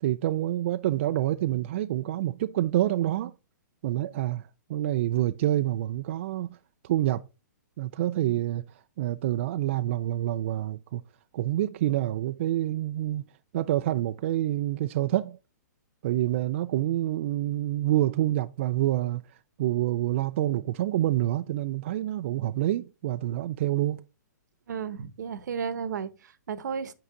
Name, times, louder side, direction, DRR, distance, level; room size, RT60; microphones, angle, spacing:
voice 1, 0.0-3.3 3.8-6.6 6.8-7.2 7.8-8.6 9.0-11.0 11.3-13.2 13.5-15.4 16.0-19.2 19.6-24.0, right 14 dB, 40° right, 0.4 m, -27 dB
voice 2, 24.7-26.9, right 6 dB, 70° right, 0.9 m, -33 dB
8.5 x 5.5 x 3.7 m
hypercardioid pair, 155°, 10 cm